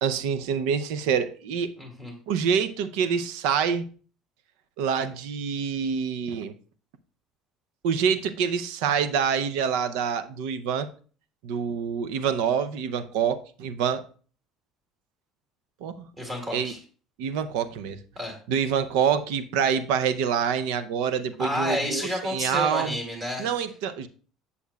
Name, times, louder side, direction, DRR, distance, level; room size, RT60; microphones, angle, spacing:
voice 1, 0.0-1.7 2.3-3.9 4.8-6.5 7.8-10.9 11.4-14.0 15.8-16.1 16.5-16.7 17.2-18.0 18.5-23.0 23.4-24.1, right 7 dB, 85° right, 0.5 m, -26 dB
voice 2, 1.8-2.1 16.2-16.8 18.2-18.4 21.4-23.5, left 1 dB, 20° right, 2.3 m, -30 dB
8.3 x 6.9 x 2.3 m
cardioid pair, 130°, 0 cm